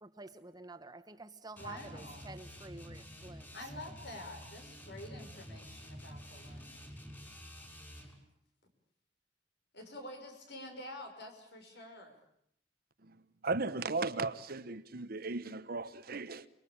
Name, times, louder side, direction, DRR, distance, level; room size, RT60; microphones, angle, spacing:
voice 1, 0.0-3.5, right 3 dB, 20° right, 1.2 m, -49 dB
voice 2, 1.6-2.2 3.5-6.8 9.7-12.2, left 1 dB, 65° left, 5.9 m, -48 dB
sound 1, 1.6-8.2, equal, 10° left, 6.0 m, -49 dB
voice 3, 13.0-16.5, right 3 dB, 55° right, 1.0 m, -36 dB
28.5 x 22.5 x 8.8 m
head